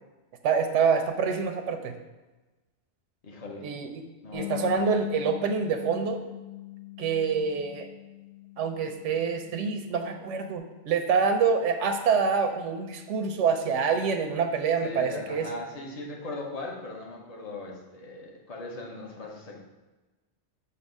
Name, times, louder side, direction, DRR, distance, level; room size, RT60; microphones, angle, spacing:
voice 1, 0.4-1.9 3.6-6.2 7.0-7.9 8.6-15.5, right 6 dB, 85° right, 6 dB, 0.9 m, -26 dB
voice 2, 3.2-3.7 4.2-4.9 14.8-19.7, left 2 dB, 35° left, -1 dB, 1.0 m, -39 dB
Bass guitar, 4.3-10.6, left 18 dB, 85° left, 1.0 m, -41 dB
6.6 x 2.7 x 5.2 m, 1.1 s
omnidirectional pair, 1.2 m